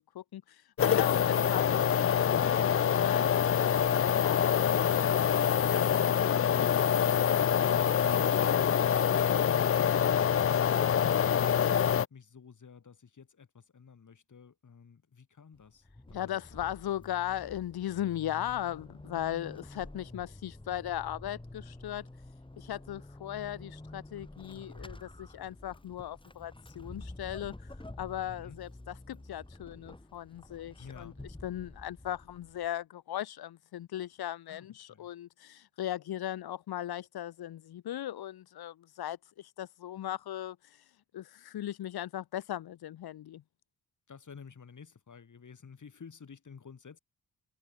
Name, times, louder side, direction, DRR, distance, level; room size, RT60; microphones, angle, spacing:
voice 1, 0.2-5.3 16.1-22.1 22.6-31.1 31.4-40.9 41.1-43.4, left 12 dB, 90° left, 3.8 m, -38 dB
sound 1, 0.8-12.1, left 8 dB, 40° left, 0.5 m, -25 dB
voice 2, 6.3-16.6 28.2-28.6 30.8-31.2 34.5-35.1 44.1-47.0, left 6 dB, 55° left, 7.3 m, -52 dB
Vehicle / Accelerating revving vroom / Squeak, 15.5-32.8, left 1 dB, 15° left, 4.6 m, -49 dB
cardioid pair, 60°, 36 cm